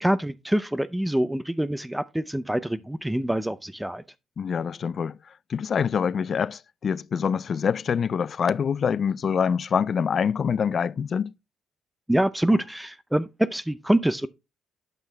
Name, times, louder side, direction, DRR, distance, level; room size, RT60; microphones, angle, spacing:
voice 1, 0.0-4.0 12.1-14.3, right 1 dB, 5° right, 0.5 m, -25 dB
voice 2, 4.4-5.2 5.5-11.3, left 7 dB, 50° left, 0.3 m, -25 dB
9.0 x 5.8 x 3.3 m
cardioid pair, 90°, 0 cm